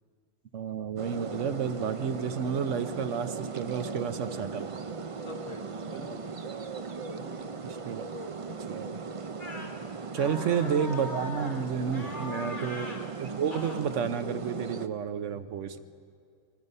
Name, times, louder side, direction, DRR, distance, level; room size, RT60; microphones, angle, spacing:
voice 1, 0.5-4.7 7.6-8.0 8.5-9.0 10.1-13.0 13.2-15.8, right 7 dB, 80° right, 8 dB, 1.2 m, -31 dB
sound 1, 1.0-14.9, right 4 dB, 35° right, 0.6 m, -38 dB
voice 2, 5.2-6.3 7.1-7.6 9.5-10.7 12.0-12.7 15.7-15.8, left 3 dB, 70° left, 2 dB, 2.2 m, -47 dB
sound 2, 9.4-9.7 10.2-11.6 11.9-13.0 13.5-13.8, left 1 dB, 40° left, 2.6 m, -40 dB
25.0 x 21.5 x 5.5 m, 2.2 s
omnidirectional pair, 1.3 m